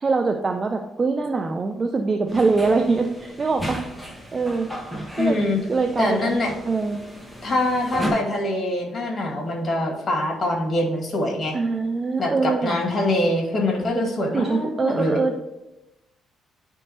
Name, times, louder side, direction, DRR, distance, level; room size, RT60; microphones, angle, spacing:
voice 1, 0.0-3.8 4.3-4.7 5.1-5.4 5.7-6.3 6.7-7.0 11.5-12.8 14.3-15.4, right 4 dB, 35° right, 5 dB, 0.5 m, -23 dB
sound 1, 2.3-8.1, equal, ahead, 1.3 m, -35 dB
voice 2, 5.2-5.6 6.0-6.5 7.4-11.6 12.2-15.2, left 1 dB, 40° left, -2 dB, 1.9 m, -24 dB
10.5 x 3.6 x 2.8 m, 0.97 s
cardioid pair, 90°, 0 cm